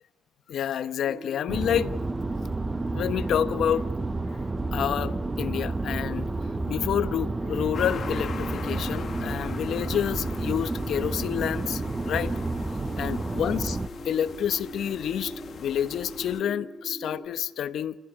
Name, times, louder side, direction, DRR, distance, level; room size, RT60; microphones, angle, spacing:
voice 1, 0.5-1.9 2.9-3.9 4.7-6.3 6.7-12.3 13.0-13.8 14.0-15.3 15.6-18.0, left 9 dB, 70° left, 1.1 m, -28 dB
sound 1, 1.0-17.3, right 1 dB, ahead, 4.8 m, -41 dB
sound 2, 1.5-13.9, right 3 dB, 20° right, 0.9 m, -31 dB
sound 3, 7.7-16.4, left 6 dB, 50° left, 1.7 m, -41 dB
30.0 x 16.0 x 9.9 m
cardioid pair, 90°, 0 cm